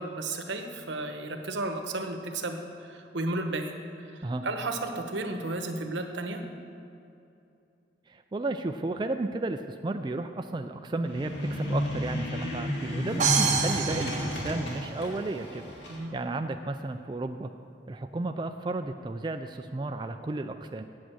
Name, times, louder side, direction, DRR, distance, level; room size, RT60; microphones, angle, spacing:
voice 1, 0.0-3.7 4.0-6.4 15.9-16.2, right 2 dB, 80° right, 5 dB, 1.0 m, -33 dB
voice 2, 8.1-15.7 16.1-17.5 17.9-20.8, right 2 dB, 25° right, 6 dB, 0.3 m, -33 dB
sound 1, 11.0-16.0, equal, 75° left, 2.4 m, -32 dB
sound 2, 13.2-15.2, right 5 dB, 40° right, 0.9 m, -27 dB
8.6 x 8.2 x 7.8 m, 2.6 s
head